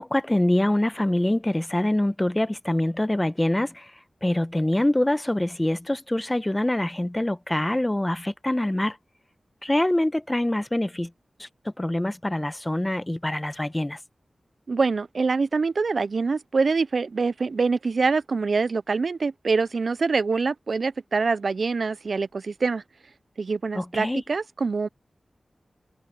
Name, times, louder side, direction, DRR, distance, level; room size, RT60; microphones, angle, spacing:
voice 1, 0.0-3.9 4.2-9.0 9.6-11.1 11.4-11.5 11.8-14.0 23.7-24.2, left 1 dB, 20° left, 0.9 m, -25 dB
voice 2, 14.7-22.8 23.4-24.9, right 4 dB, 70° right, 0.3 m, -25 dB
cardioid pair, 50°, 0 cm